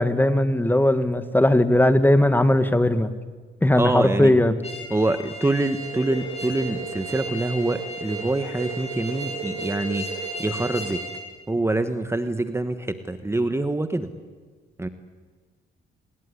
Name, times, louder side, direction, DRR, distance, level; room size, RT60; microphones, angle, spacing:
voice 1, 0.0-3.1 3.6-4.6, left 1 dB, 10° left, 11 dB, 1.7 m, -19 dB
voice 2, 3.8-4.4 4.9-10.1 10.4-11.0 11.5-14.1 14.8-14.9, right 2 dB, 15° right, 10 dB, 1.3 m, -25 dB
sound 1, 4.6-11.2, equal, 30° left, 6.6 m, -36 dB
sound 2, 5.8-11.0, right 6 dB, 65° right, 5.6 m, -36 dB
26.0 x 20.0 x 9.9 m, 1.4 s
cardioid pair, 90°, 20 cm